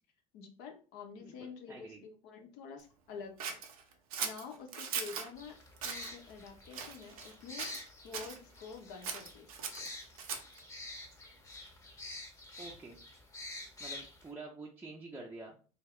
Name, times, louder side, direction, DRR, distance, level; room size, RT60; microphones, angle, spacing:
voice 1, 0.3-3.6 4.2-5.6 5.8-9.9, left 5 dB, 60° left, 4 dB, 0.7 m, -48 dB
voice 2, 1.2-2.0 12.6-13.0 13.8-15.6, right 3 dB, 10° right, -2 dB, 0.5 m, -48 dB
Scissors, 3.4-5.3 5.8-6.1 6.7-7.3 7.6-8.4 9.0-10.6, right 6 dB, 75° right, 0.5 m, -39 dB
sound 1, 5.4-14.3, left 2 dB, 20° left, 0.9 m, -48 dB
2.3 x 2.1 x 3.5 m, 0.37 s
hypercardioid pair, 70°, 19 cm